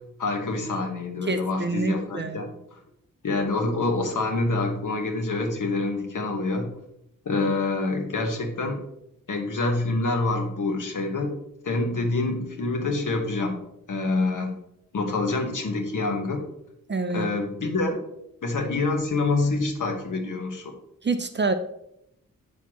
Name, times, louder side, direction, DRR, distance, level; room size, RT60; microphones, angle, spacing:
voice 1, 0.2-2.8 3.2-6.7 7.2-8.8 9.3-11.4 11.6-13.6 13.9-14.5 14.9-16.4 17.1-18.0 18.4-20.7, left 3 dB, 60° left, 3 dB, 1.4 m, -26 dB
voice 2, 1.3-2.4 16.9-17.3 21.0-21.5, right 3 dB, 30° right, 8 dB, 0.5 m, -27 dB
8.0 x 6.4 x 3.1 m, 0.78 s
wide cardioid pair, 130°, 35 cm